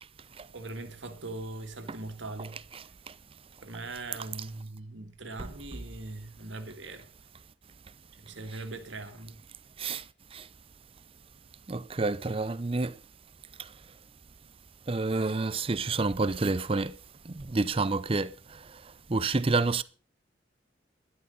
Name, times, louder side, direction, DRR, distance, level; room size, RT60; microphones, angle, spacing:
voice 1, 0.5-2.6 3.6-7.0 8.2-9.4, right 2 dB, 75° right, 1.9 m, -41 dB
voice 2, 11.7-12.9 14.9-16.9 17.5-18.3 19.1-19.8, right 3 dB, 30° right, 0.6 m, -28 dB
12.5 x 11.0 x 5.4 m
head